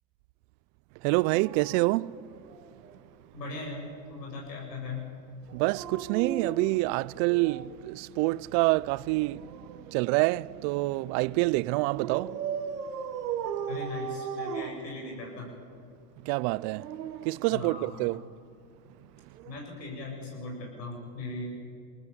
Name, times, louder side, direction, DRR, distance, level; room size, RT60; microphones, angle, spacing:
voice 1, 1.0-2.1 5.5-12.6 16.2-16.9 17.2-18.2, right 22 dB, 45° right, 0.5 m, -27 dB
Dog, 1.1-3.0 5.4-7.8 9.1-10.8 11.9-15.5 16.4-18.1 19.4-19.6, right 7 dB, 80° right, 2.0 m, -38 dB
voice 2, 3.3-5.1 13.7-15.5 17.5-18.2 19.4-21.4, left 3 dB, 85° left, 7.2 m, -39 dB
21.5 x 18.5 x 8.3 m
hypercardioid pair, 105°, 48 cm